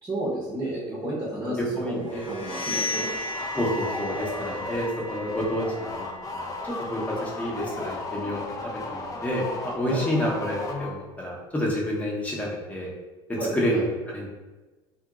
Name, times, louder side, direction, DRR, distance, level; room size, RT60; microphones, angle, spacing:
voice 1, 0.0-3.1 9.9-10.1 13.4-13.8, right 1 dB, 20° right, -6 dB, 0.8 m, -32 dB
voice 2, 1.4-2.3 3.5-12.9 13.3-14.3, equal, 10° left, -4 dB, 0.8 m, -29 dB
sound 1, 2.1-7.8, left 2 dB, 55° left, 1.0 m, -36 dB
sound 2, 2.9-11.2, left 2 dB, 30° left, 0.4 m, -35 dB
2.8 x 2.7 x 2.4 m, 1.2 s
supercardioid pair, 105°, 12 cm